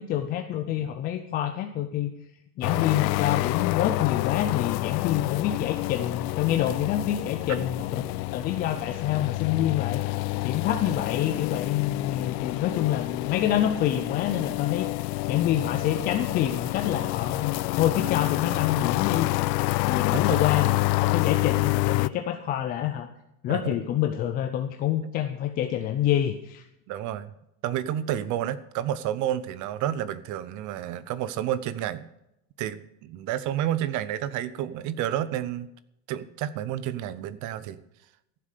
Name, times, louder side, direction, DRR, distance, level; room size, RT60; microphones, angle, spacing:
voice 1, 0.0-2.1 2.6-7.9 8.3-10.0 10.4-14.9 15.3-19.4 19.9-23.1 23.4-26.6, left 11 dB, 20° left, 6 dB, 0.4 m, -27 dB
sound 1, 2.6-22.1, left 21 dB, 80° left, 0.6 m, -28 dB
voice 2, 26.9-27.3 27.6-32.0 32.6-35.7 36.1-37.8, right 11 dB, 35° right, 16 dB, 0.8 m, -30 dB
14.5 x 7.6 x 6.7 m, 0.83 s
supercardioid pair, 145°, 50 cm